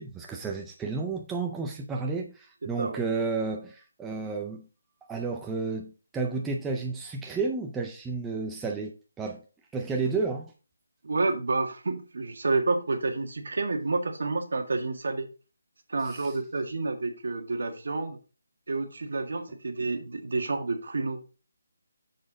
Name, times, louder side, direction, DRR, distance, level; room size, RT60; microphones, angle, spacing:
voice 1, 0.0-4.6 5.1-9.4 9.7-10.5 16.0-16.3, right 4 dB, 5° right, 1 dB, 0.4 m, -32 dB
voice 2, 11.0-15.3 15.9-18.2 18.7-21.2, right 3 dB, 55° right, 4 dB, 1.7 m, -29 dB
7.0 x 6.4 x 3.8 m, 0.34 s
hypercardioid pair, 180°, 0 cm